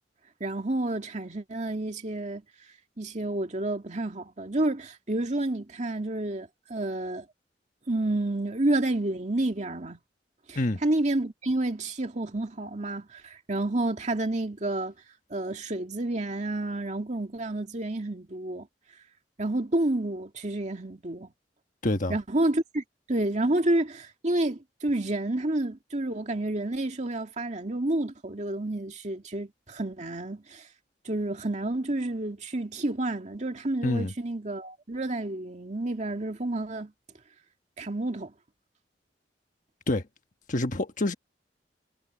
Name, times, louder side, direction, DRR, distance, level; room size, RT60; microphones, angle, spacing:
voice 1, 0.4-2.4 3.0-7.3 7.9-10.0 10.5-14.9 15.3-18.7 19.4-21.3 22.1-30.7 31.1-36.9 37.8-38.3, right 1 dB, 40° right, 2.1 m, -29 dB
voice 2, 21.8-22.1 33.8-34.1 39.9-40.0 40.5-41.1, left 1 dB, 45° left, 1.4 m, -27 dB
head